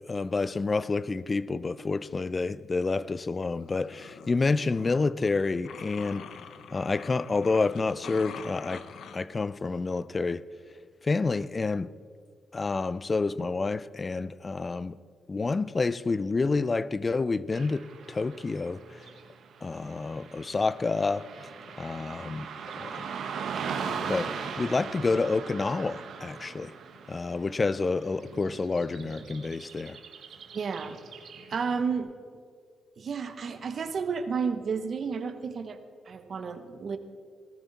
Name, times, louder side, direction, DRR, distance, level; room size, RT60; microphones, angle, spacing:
voice 1, 0.1-6.3 6.7-8.9 9.1-10.4 11.0-11.9 12.5-15.0 15.3-19.0 19.6-21.3 21.8-22.5 22.8-23.1 24.1-26.7 27.1-30.0, left 3 dB, 30° left, 0.4 m, -29 dB
sound 1, 3.4-9.2, left 7 dB, 75° left, 0.8 m, -46 dB
Car passing by / Traffic noise roadway noise, 17.5-31.8, right 6 dB, 80° right, 1.3 m, -40 dB
voice 2, 30.5-31.0 31.5-32.1 33.0-35.8 36.1-37.0, right 5 dB, 55° right, 1.0 m, -31 dB
18.0 x 13.0 x 4.1 m
cardioid pair, 95°, 0 cm